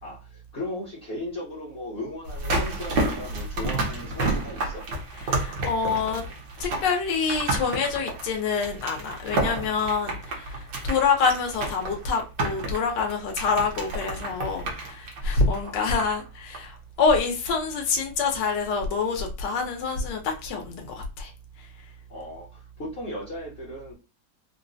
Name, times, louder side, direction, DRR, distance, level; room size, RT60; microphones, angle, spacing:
voice 1, 0.0-4.9 15.6-16.1 22.1-23.9, left 1 dB, 45° left, 0.8 m, -37 dB
sound 1, 2.2-16.3 16.5-16.6, right 2 dB, 70° right, 1.5 m, -30 dB
voice 2, 5.3-6.2 6.6-21.3, left 5 dB, 70° left, 1.4 m, -26 dB
3.9 x 2.1 x 2.6 m
omnidirectional pair, 2.0 m